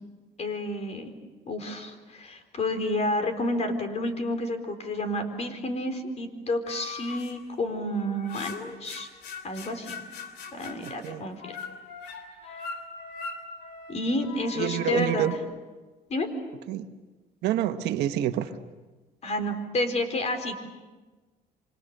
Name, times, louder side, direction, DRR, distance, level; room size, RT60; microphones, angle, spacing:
voice 1, 0.4-1.1 1.5-9.1 9.4-10.0 10.5-11.6 12.0-12.2 13.9-15.3 16.1-16.3 19.2-20.6, left 1 dB, 40° left, 7 dB, 4.2 m, -30 dB
sound 1, 6.7-7.3 7.9-15.4, left 5 dB, 80° left, 3.1 m, -41 dB
voice 2, 10.8-11.2 14.5-15.3 16.7-16.9 17.4-18.5, right 12 dB, 80° right, 8 dB, 1.4 m, -27 dB
28.0 x 25.5 x 6.7 m, 1.3 s
cardioid pair, 110°, 17 cm